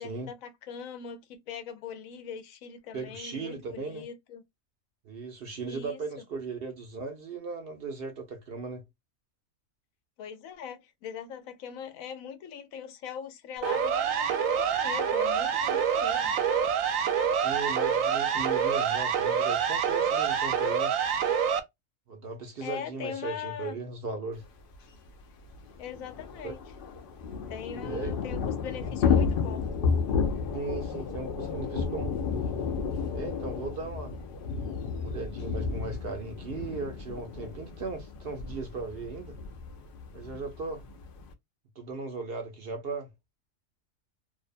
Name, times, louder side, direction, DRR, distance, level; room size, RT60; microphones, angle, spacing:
voice 1, 0.0-4.4 5.6-6.0 10.2-16.3 22.6-23.8 25.8-26.6 27.5-29.7, left 7 dB, 85° left, 1.0 m, -41 dB
voice 2, 2.9-4.0 5.0-8.8 17.3-20.9 22.1-24.4 26.4-26.5 27.8-28.1 30.5-32.1 33.1-34.2 35.0-39.4 40.1-40.8 41.8-43.1, right 4 dB, 60° right, 0.7 m, -37 dB
Siren, 13.6-21.6, right 7 dB, 75° right, 0.9 m, -26 dB
Thunder / Rain, 24.7-24.8 25.1-25.2 25.5-41.3, left 6 dB, 60° left, 0.6 m, -32 dB
2.6 x 2.1 x 2.4 m
omnidirectional pair, 1.4 m